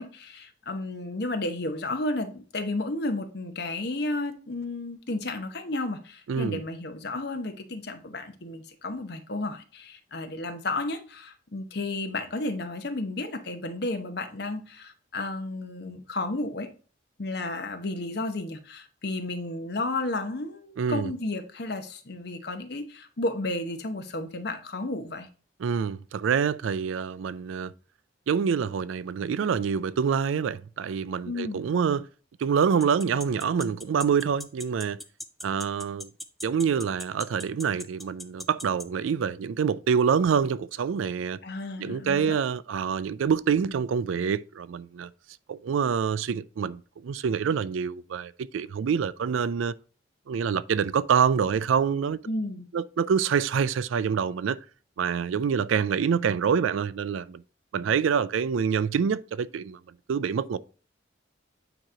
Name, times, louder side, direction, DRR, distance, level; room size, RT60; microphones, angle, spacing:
voice 1, 0.0-16.7 17.2-25.3 31.2-31.6 41.4-42.3 52.3-52.7, left 2 dB, 55° left, 0.9 m, -32 dB
voice 2, 6.3-6.6 20.8-21.1 25.6-27.7 28.3-32.1 32.4-35.0 35.4-36.1 36.4-41.4 41.8-45.1 45.5-49.7 50.3-52.2 52.7-54.6 55.0-57.4 57.7-59.8 60.1-60.6, right 6 dB, 85° right, 0.4 m, -26 dB
sound 1, 32.8-38.8, left 1 dB, ahead, 0.3 m, -38 dB
8.9 x 3.0 x 4.9 m
head